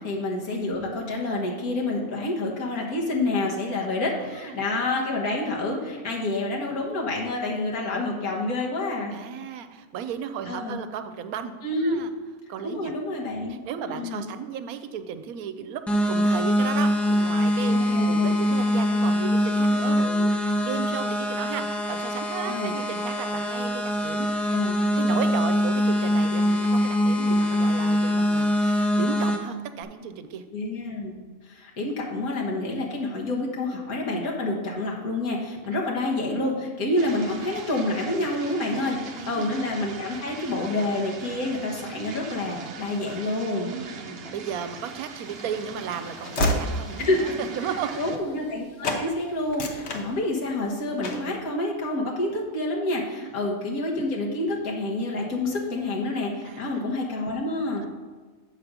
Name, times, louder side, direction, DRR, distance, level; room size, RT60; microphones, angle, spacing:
voice 1, 0.0-9.1 10.5-10.8 11.6-12.0 12.6-13.6 13.9-14.3 17.7-18.4 22.5-22.7 24.5-24.8 30.5-31.1 31.5-39.0 39.3-43.7 47.0-47.3 48.0-57.9, left 2 dB, 75° left, -2 dB, 1.7 m, -28 dB
voice 2, 4.2-4.6 6.0-6.1 9.1-11.5 11.8-12.1 12.5-12.9 13.5-24.6 25.0-30.4 38.7-39.5 43.6-48.0 48.8-49.1 53.2-53.4 56.4-56.8 57.8-57.9, right 8 dB, 75° right, 10 dB, 1.1 m, -35 dB
sound 1, 15.9-29.4, left 1 dB, ahead, 0.6 m, -23 dB
sound 2, 37.0-48.2, right 5 dB, 55° right, 0.8 m, -41 dB
Train / Slam, 44.9-48.6 48.8-49.1 49.4-50.6 51.0-51.4, left 1 dB, 55° left, 1.1 m, -30 dB
7.6 x 5.0 x 6.0 m, 1.4 s
omnidirectional pair, 1.5 m